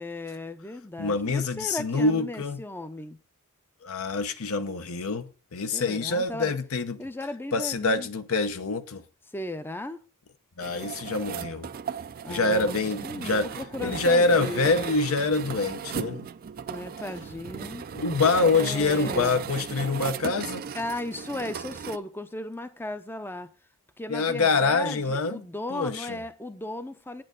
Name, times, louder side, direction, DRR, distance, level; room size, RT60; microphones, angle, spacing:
voice 1, 0.0-3.2 5.7-6.6 7.0-8.1 9.3-10.0 12.2-14.7 16.7-17.9 18.5-19.5 20.7-23.5 24.0-27.2, left 2 dB, 10° left, 0.5 m, -36 dB
voice 2, 1.0-2.6 3.8-7.0 7.5-9.0 10.6-11.7 12.3-13.5 13.8-16.3 17.9-20.6 24.1-25.4 25.7-26.2, left 3 dB, 70° left, 0.7 m, -25 dB
sound 1, 10.6-22.0, right 6 dB, 40° right, 0.4 m, -36 dB
9.2 x 7.7 x 3.8 m
head